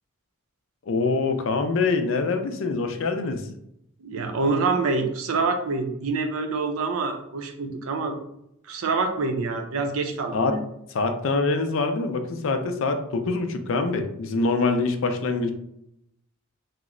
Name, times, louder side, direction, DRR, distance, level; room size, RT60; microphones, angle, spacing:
voice 1, 0.9-3.5 10.3-10.6 10.9-15.5, left 3 dB, 60° left, 6 dB, 0.4 m, -24 dB
voice 2, 4.0-8.2 8.6-10.6, right 3 dB, 80° right, 5 dB, 0.5 m, -26 dB
3.0 x 2.1 x 3.6 m, 0.78 s
head